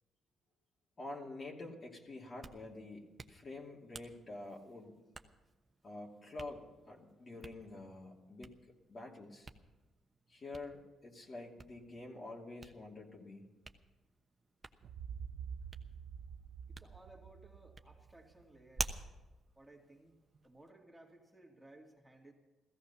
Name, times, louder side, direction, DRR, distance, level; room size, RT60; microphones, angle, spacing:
voice 1, 1.0-4.9 5.8-8.5 8.9-9.5 10.3-13.5, left 2 dB, 35° left, -1 dB, 2.7 m, -48 dB
Hands, 2.2-20.7, right 3 dB, 25° right, 1.0 m, -51 dB
sound 1, 14.8-18.7, right 7 dB, 75° right, 0.5 m, -47 dB
voice 2, 16.7-19.1 19.5-20.2 20.4-22.3, right 1 dB, 5° right, -1 dB, 2.5 m, -59 dB
15.5 x 15.0 x 5.8 m, 1.2 s
cardioid pair, 90°, 0 cm